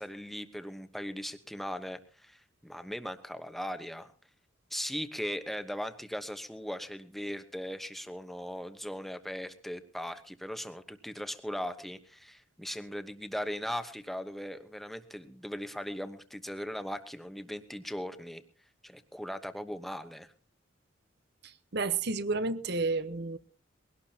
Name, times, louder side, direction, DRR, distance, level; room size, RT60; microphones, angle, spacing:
voice 1, 0.0-4.1 4.7-18.4 18.8-20.3, equal, ahead, 1.0 m, -39 dB
voice 2, 21.4-23.4, right 3 dB, 55° right, 1.0 m, -31 dB
22.0 x 17.5 x 2.9 m
head